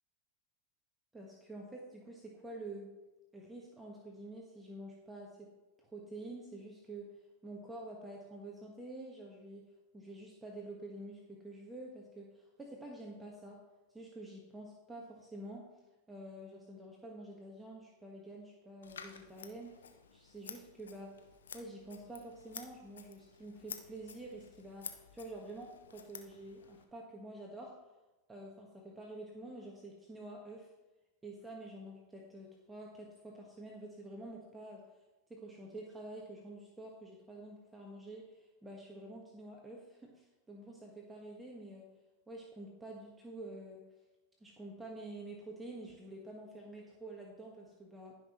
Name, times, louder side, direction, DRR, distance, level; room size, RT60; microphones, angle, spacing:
voice 1, 1.1-3.0 3.3-5.5 5.8-13.6 13.9-15.7 16.1-19.8 20.1-21.3 21.5-27.8 28.3-30.7 31.2-34.8 35.3-41.9 42.3-43.9 44.4-48.2, right 1 dB, 15° right, -1 dB, 1.5 m, -48 dB
Scissors, 18.8-26.8, left 7 dB, 80° left, 0.9 m, -51 dB
15.5 x 5.8 x 3.1 m, 1.1 s
hypercardioid pair, 95°, 0 cm